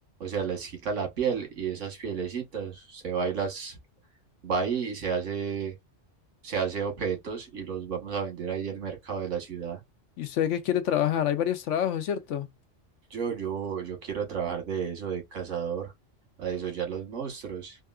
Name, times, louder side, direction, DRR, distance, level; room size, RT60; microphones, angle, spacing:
voice 1, 0.2-3.8 4.4-5.7 6.4-9.8 13.1-15.9 16.4-17.8, right 6 dB, 80° right, 1.6 m, -31 dB
voice 2, 10.2-12.5, left 10 dB, 80° left, 1.0 m, -27 dB
3.5 x 2.3 x 2.3 m
omnidirectional pair, 1.3 m